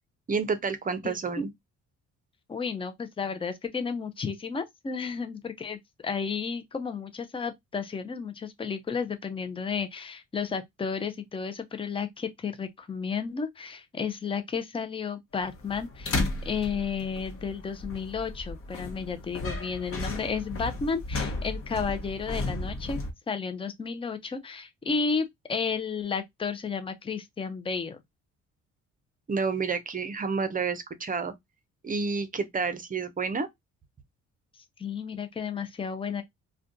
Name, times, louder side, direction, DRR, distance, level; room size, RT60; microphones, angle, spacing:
voice 1, 0.3-1.5 29.3-31.3 31.8-33.5, right 4 dB, 25° right, 0.6 m, -29 dB
voice 2, 1.0-1.5 2.5-23.0 23.3-28.0 34.8-36.2, left 5 dB, 20° left, 0.5 m, -32 dB
sound 1, 15.4-23.1, left 2 dB, 45° left, 0.9 m, -34 dB
2.4 x 2.3 x 3.7 m
cardioid pair, 90°, 30 cm